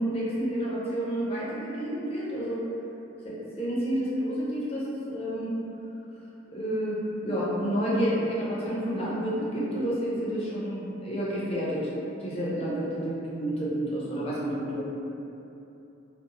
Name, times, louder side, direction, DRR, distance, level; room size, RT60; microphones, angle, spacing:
voice 1, 0.0-2.6 3.2-5.5 6.5-11.9 12.2-14.8, equal, 30° left, -7 dB, 0.5 m, -29 dB
2.6 x 2.0 x 2.8 m, 2.9 s
head